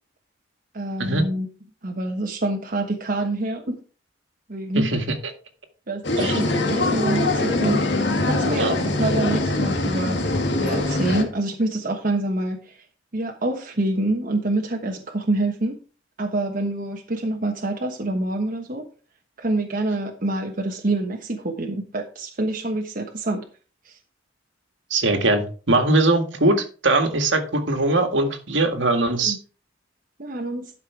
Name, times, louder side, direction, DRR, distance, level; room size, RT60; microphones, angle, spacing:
voice 1, 0.7-1.5 1.8-3.8 4.5-4.9 5.9-7.9 8.2-12.8 13.1-15.7 16.2-18.9 19.4-23.4 23.8-24.0 29.2-29.4 30.2-30.7, right 2 dB, 45° right, 2 dB, 1.2 m, -26 dB
sound 1, 6.0-11.2, left 2 dB, 65° left, 2.0 m, -23 dB
voice 2, 24.9-29.4, right 2 dB, 75° right, 6 dB, 1.9 m, -21 dB
12.0 x 5.8 x 4.6 m, 0.37 s
head